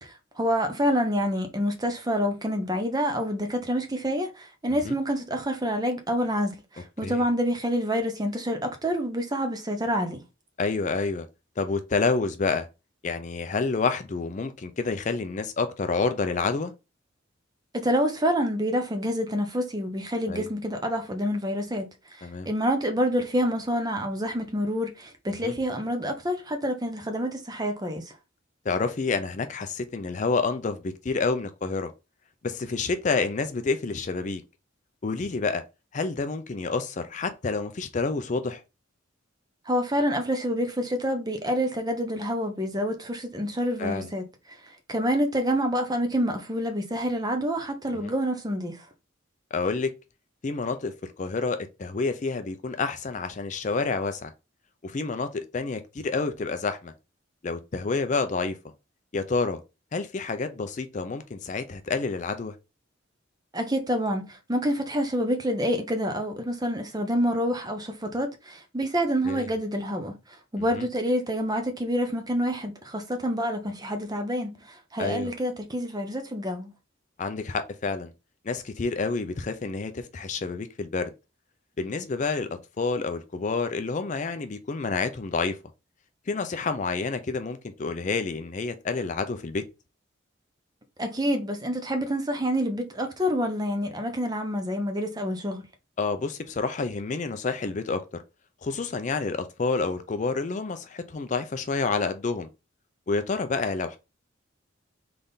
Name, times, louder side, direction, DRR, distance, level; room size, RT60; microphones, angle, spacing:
voice 1, 0.0-10.2 17.7-21.9 22.2-28.1 39.7-44.2 44.9-48.8 63.5-70.1 70.5-76.7 91.0-95.6, equal, 20° right, 0.7 m, -27 dB
voice 2, 10.6-11.3 11.6-12.7 13.0-16.7 20.3-20.5 22.2-22.5 25.4-25.5 28.7-31.9 32.4-34.4 35.0-35.6 35.9-38.6 43.8-44.1 48.0-48.1 49.5-49.9 50.4-54.3 54.8-56.9 57.4-58.6 59.1-59.6 59.9-62.6 69.2-69.5 70.7-70.9 75.0-75.3 77.2-78.1 78.5-81.1 81.8-85.6 86.3-89.6 96.0-98.2 98.6-102.5 103.1-104.0, left 4 dB, 40° left, 0.4 m, -28 dB
3.6 x 3.4 x 3.9 m
head